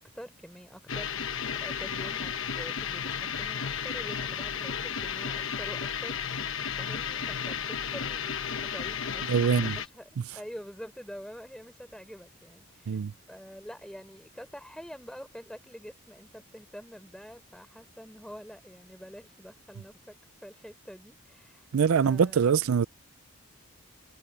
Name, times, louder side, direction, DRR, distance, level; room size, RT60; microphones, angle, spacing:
voice 1, 0.0-6.4 6.8-10.0 10.3-13.0 13.3-20.2 20.4-21.6 21.9-22.6, equal, 5° left, 3.9 m, -46 dB
sound 1, 0.9-9.9, left 7 dB, 60° left, 1.1 m, -33 dB
voice 2, 9.3-9.8 10.2-10.4 12.9-13.1 21.7-22.9, right 6 dB, 70° right, 0.4 m, -24 dB
head